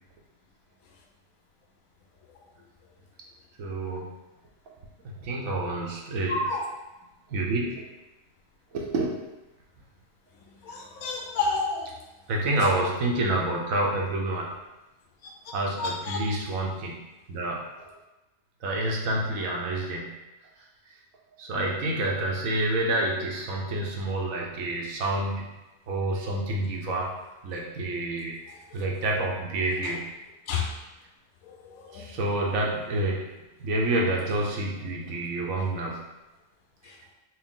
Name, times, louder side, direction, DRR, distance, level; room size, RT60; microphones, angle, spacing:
voice 1, 3.6-4.1 5.0-6.4 7.3-7.8 8.7-9.1 12.3-14.6 15.5-17.0 17.3-17.6 18.6-20.1 21.4-25.5 25.9-27.1 27.4-28.3 28.7-30.0 31.9-33.2 33.6-36.0, right 2 dB, 70° right, -1 dB, 1.0 m, -28 dB
voice 2, 6.3-6.7 10.6-11.9 12.6-12.7 15.2-16.3 28.5-28.8 29.8-29.9 30.5-30.7 31.4-32.3 36.8-37.0, left 3 dB, 75° left, 1 dB, 1.1 m, -31 dB
4.5 x 2.1 x 3.6 m, 1.0 s
omnidirectional pair, 1.6 m